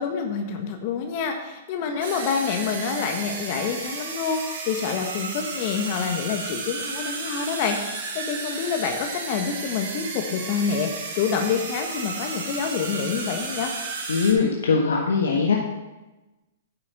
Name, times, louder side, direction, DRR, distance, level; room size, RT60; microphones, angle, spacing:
voice 1, 0.0-13.7, left 6 dB, 45° left, 4 dB, 1.4 m, -27 dB
sound 1, 2.0-14.3, right 4 dB, 55° right, 3.9 m, -33 dB
voice 2, 14.1-15.6, left 5 dB, 75° left, 0 dB, 1.4 m, -21 dB
9.8 x 6.4 x 7.4 m, 1.1 s
figure-of-eight pair, 115°, 0 cm